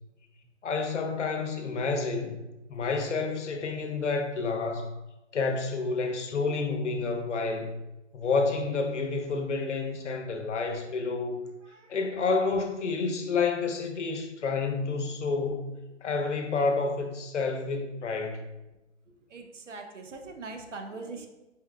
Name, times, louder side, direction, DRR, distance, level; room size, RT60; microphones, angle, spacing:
voice 1, 0.6-2.4 2.7-4.9 5.3-7.8 8.1-11.4 11.9-15.7 16.0-18.5, left 4 dB, 70° left, 4 dB, 0.8 m, -29 dB
voice 2, 19.3-21.3, right 3 dB, 75° right, 4 dB, 0.8 m, -41 dB
4.4 x 3.2 x 2.3 m, 0.98 s
hypercardioid pair, 170°, 37 cm